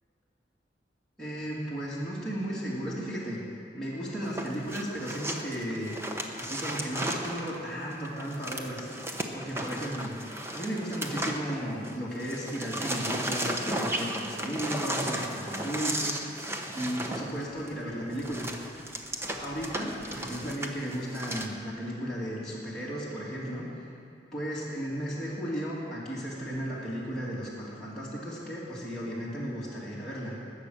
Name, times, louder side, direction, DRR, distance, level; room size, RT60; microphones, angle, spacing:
voice 1, 1.2-3.4 3.7-5.9 6.4-8.9 9.3-10.2 10.5-18.5 19.2-23.7 24.3-30.3, equal, 5° left, -9 dB, 2.6 m, -35 dB
sound 1, 4.2-11.9 12.2-21.5, right 1 dB, 15° right, 1.0 m, -35 dB
21.0 x 8.3 x 6.5 m, 2.5 s
head